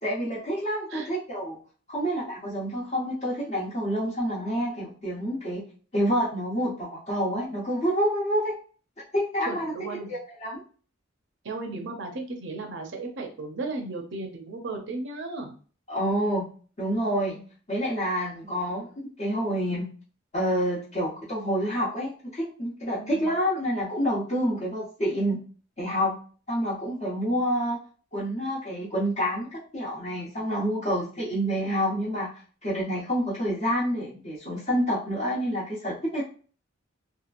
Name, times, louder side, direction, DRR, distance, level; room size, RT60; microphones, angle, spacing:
voice 1, 0.0-1.6 1.9-5.6 5.9-8.6 9.1-9.7 10.1-10.6 15.9-16.5 16.8-17.4 17.7-18.9 19.2-19.9 20.3-25.4 25.8-26.2 26.5-27.8 28.1-32.3 32.6-36.2, equal, 35° left, -10 dB, 0.9 m, -28 dB
voice 2, 9.5-10.1 11.4-15.5 23.0-23.3, right 3 dB, 65° right, 2 dB, 0.6 m, -35 dB
2.9 x 2.4 x 2.5 m, 0.40 s
head